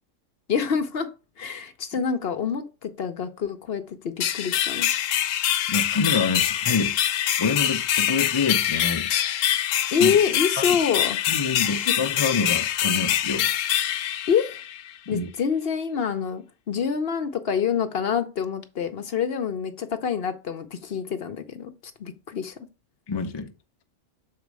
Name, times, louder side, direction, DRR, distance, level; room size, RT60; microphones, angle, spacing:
voice 1, 0.5-1.1 1.4-4.9 9.9-11.2 11.8-11.9 14.3-14.6 15.1-22.6, left 7 dB, 55° left, 0.8 m, -26 dB
sound 1, 4.2-14.9, left 11 dB, 85° left, 1.0 m, -24 dB
voice 2, 5.7-7.0 7.4-9.1 10.0-10.2 10.6-10.7 11.3-13.5 15.1-15.3 23.1-23.5, left 4 dB, 30° left, 0.5 m, -26 dB
6.7 x 4.1 x 4.7 m
omnidirectional pair, 1.3 m